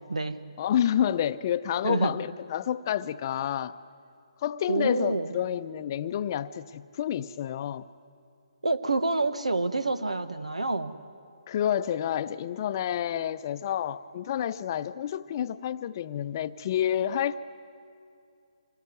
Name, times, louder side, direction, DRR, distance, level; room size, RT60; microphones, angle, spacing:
voice 1, 0.0-0.5 1.8-2.2 4.7-5.3 8.6-10.9, right 3 dB, 80° right, 12 dB, 1.4 m, -28 dB
voice 2, 0.6-3.8 4.4-7.9 11.5-17.5, left 10 dB, 40° left, 12 dB, 0.7 m, -29 dB
25.5 x 20.0 x 9.5 m, 2.5 s
figure-of-eight pair, 145°, 3 cm